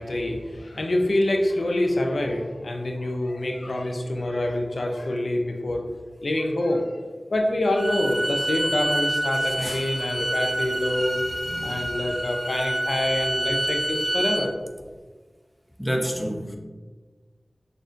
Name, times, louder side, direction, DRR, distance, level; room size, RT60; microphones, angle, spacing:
voice 1, 0.0-5.8 6.2-7.0 7.3-11.2 11.6-14.5, left 1 dB, 80° left, 0.5 m, -26 dB
Bowed string instrument, 7.7-14.5, right 1 dB, 40° right, 1.5 m, -27 dB
voice 2, 11.5-11.9 15.8-16.6, equal, ahead, 0.6 m, -29 dB
6.2 x 2.6 x 2.5 m
wide cardioid pair, 40°, 0 cm